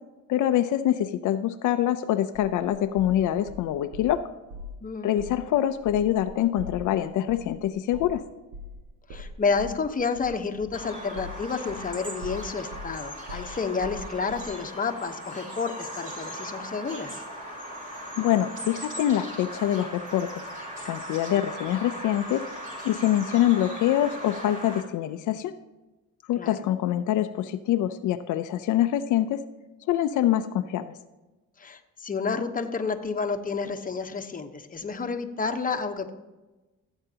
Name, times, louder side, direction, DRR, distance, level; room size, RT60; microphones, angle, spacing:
voice 1, 0.3-4.2 5.0-8.2 18.2-20.3 20.8-22.4 22.8-25.5 26.3-29.4 29.9-30.9, left 12 dB, 80° left, 9 dB, 0.6 m, -25 dB
sound 1, 2.3-4.1 4.5-4.8 5.2-5.4 5.7-11.9 12.2-14.5, left 2 dB, 85° right, 1.7 m, -41 dB
voice 2, 4.8-5.2 9.1-17.2 26.3-26.6 31.6-36.1, left 5 dB, 30° left, 6 dB, 1.0 m, -30 dB
Bird vocalization bird call bird song, 10.7-24.8, equal, 25° right, 3.1 m, -39 dB
15.5 x 8.0 x 2.8 m, 1.1 s
cardioid pair, 90°, 30 cm